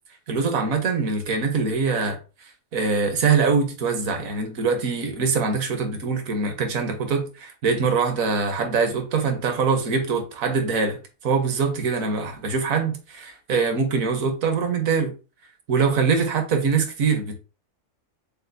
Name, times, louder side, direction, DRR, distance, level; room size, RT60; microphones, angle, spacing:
voice 1, 0.3-2.2 2.7-11.0 11.2-15.1 15.7-17.4, right 5 dB, 60° right, 1.2 m, -23 dB
6.7 x 2.4 x 2.6 m
omnidirectional pair, 1.7 m